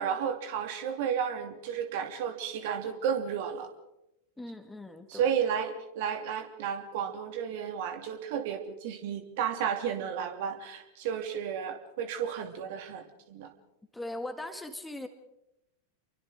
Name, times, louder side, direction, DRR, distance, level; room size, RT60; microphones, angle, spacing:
voice 1, 0.0-3.7 5.1-13.5, right 8 dB, 50° right, 6 dB, 2.7 m, -32 dB
voice 2, 4.4-5.3 13.9-15.1, left 1 dB, 5° left, 7 dB, 1.8 m, -39 dB
30.0 x 23.5 x 3.8 m, 0.86 s
figure-of-eight pair, 90°, 0 cm